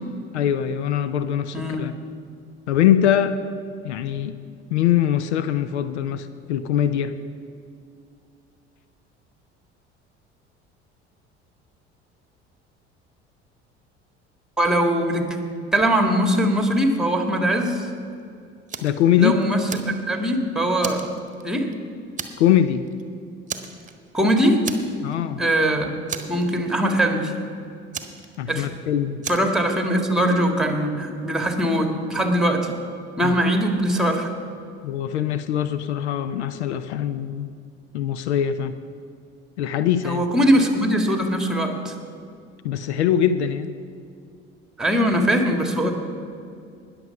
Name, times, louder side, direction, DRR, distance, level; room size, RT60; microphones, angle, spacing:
voice 1, 0.3-1.9 2.7-3.4 3.8-4.4 4.7-7.2 18.8-19.4 22.4-22.9 25.0-25.4 28.4-29.3 33.2-33.4 34.8-37.5 37.9-38.8 39.6-40.3 42.6-43.7, left 10 dB, 75° left, 12 dB, 0.6 m, -22 dB
voice 2, 14.6-15.4 15.7-17.9 19.2-21.1 21.4-21.7 24.1-24.7 25.4-25.9 26.3-27.4 28.5-28.7 29.3-32.8 33.2-34.3 40.0-41.9 44.8-45.9, equal, ahead, 4 dB, 2.0 m, -21 dB
Fire, 18.7-19.0 19.4-20.3 20.8-21.7 22.2-22.6 22.9-23.0 23.5-24.2 24.6-25.2 25.5-25.6 26.1-26.9 27.9-28.8 29.2-29.6, right 6 dB, 20° right, 1.3 m, -34 dB
20.0 x 6.9 x 5.8 m, 2.4 s
figure-of-eight pair, 60°, 34 cm